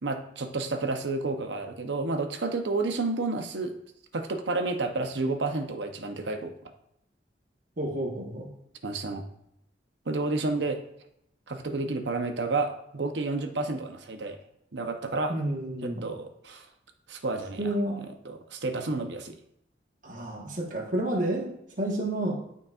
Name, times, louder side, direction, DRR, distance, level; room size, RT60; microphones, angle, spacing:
voice 1, 0.0-3.8 4.1-6.5 8.8-9.2 10.1-10.8 11.5-14.4 14.7-15.3 15.8-16.7 17.1-17.7 18.2-19.3, right 3 dB, 75° right, 5 dB, 0.8 m, -30 dB
voice 2, 7.8-8.5 15.3-16.1 17.6-18.0 20.0-22.4, right 1 dB, 45° right, -1 dB, 1.3 m, -30 dB
11.5 x 4.1 x 2.4 m, 0.78 s
head